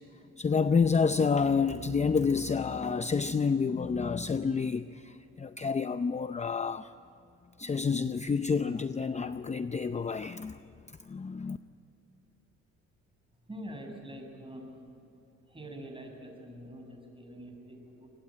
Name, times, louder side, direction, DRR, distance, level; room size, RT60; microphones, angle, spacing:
voice 1, 0.4-6.9 7.6-11.6, left 5 dB, 25° left, 11 dB, 0.6 m, -29 dB
voice 2, 13.5-14.8 15.5-18.1, equal, 15° right, 2 dB, 7.1 m, -45 dB
24.5 x 21.0 x 8.9 m, 2.7 s
cardioid pair, 90°, 30 cm